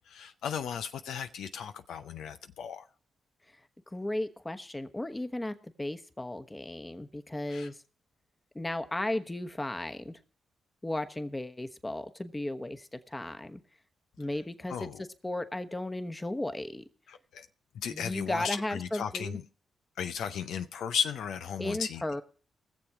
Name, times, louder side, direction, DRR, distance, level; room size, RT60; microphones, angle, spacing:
voice 1, 0.1-2.8 7.5-7.7 14.7-15.0 17.1-17.5 17.7-19.4 20.0-22.0, left 7 dB, 80° left, 9 dB, 0.5 m, -35 dB
voice 2, 3.9-7.8 8.5-10.2 10.8-13.6 14.2-16.8 17.9-19.4 21.6-22.2, left 1 dB, 20° left, 9 dB, 1.2 m, -35 dB
19.5 x 7.2 x 4.8 m, 0.40 s
supercardioid pair, 50°, 0 cm